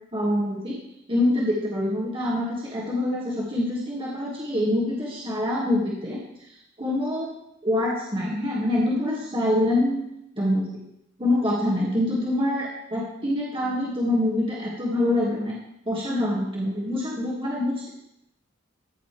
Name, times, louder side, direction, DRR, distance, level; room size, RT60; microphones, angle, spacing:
voice 1, 0.1-0.8 1.1-6.2 6.8-7.3 7.6-10.0 10.4-10.7 11.2-15.5 15.9-17.9, left 1 dB, 30° right, -6 dB, 2.0 m, -25 dB
14.5 x 6.8 x 3.4 m, 0.80 s
head